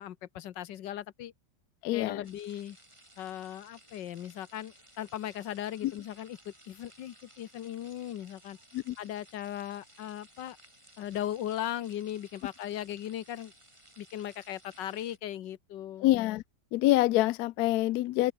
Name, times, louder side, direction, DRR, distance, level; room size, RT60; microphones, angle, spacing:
voice 1, 0.0-1.3 1.9-2.8 3.2-8.6 9.0-10.6 11.0-13.5 14.0-16.1, left 11 dB, 65° left, 1.5 m, -38 dB
voice 2, 1.8-2.2 5.8-5.9 8.7-9.0 16.0-16.4 16.7-18.3, left 16 dB, 85° left, 0.8 m, -26 dB
sound 1, 2.2-15.2, right 1 dB, 15° right, 7.0 m, -58 dB
open air
omnidirectional pair, 2.2 m